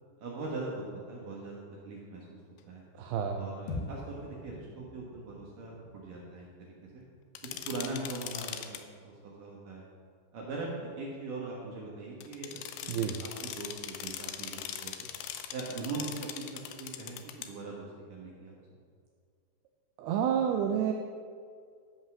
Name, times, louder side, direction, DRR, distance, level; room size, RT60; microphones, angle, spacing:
voice 1, 0.2-2.4 2.6-2.8 3.4-7.0 7.4-9.8 10.3-15.1 15.5-18.5, right 3 dB, 65° right, -3 dB, 2.3 m, -41 dB
voice 2, 3.0-3.4 12.9-13.2 20.0-20.9, right 8 dB, 85° right, 4 dB, 2.4 m, -29 dB
sound 1, 3.7-8.0, left 2 dB, 75° left, 2.2 m, -45 dB
sound 2, 7.4-8.8 12.2-17.5, left 10 dB, 90° left, 2.3 m, -41 dB
13.5 x 5.4 x 6.2 m, 2.1 s
omnidirectional pair, 5.2 m